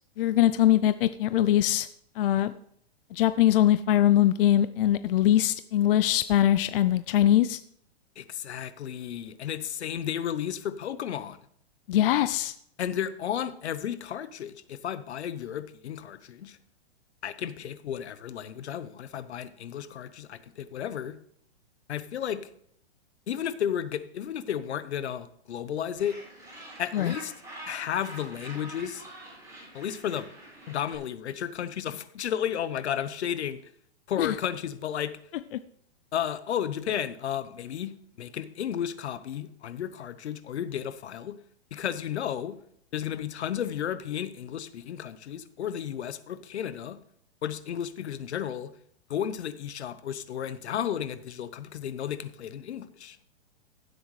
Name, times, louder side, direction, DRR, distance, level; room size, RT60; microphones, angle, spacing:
voice 1, 0.2-1.9 2.2-2.5 3.1-7.6 11.9-12.5 26.9-27.1 34.2-34.3, left 12 dB, 55° left, 13 dB, 0.5 m, -22 dB
voice 2, 8.2-11.4 12.8-16.6 17.2-21.2 21.9-22.4 23.3-26.2 26.8-27.3 27.7-29.0 29.7-30.3 30.7-33.6 34.1-35.2 36.1-41.4 41.7-42.6 42.9-47.0 47.4-48.7 49.1-53.2, left 9 dB, 80° left, 14 dB, 1.0 m, -33 dB
Gull seagull, 26.0-31.0, right 1 dB, 10° right, 4.1 m, -45 dB
16.0 x 7.9 x 3.2 m, 0.66 s
hypercardioid pair, 150°, 33 cm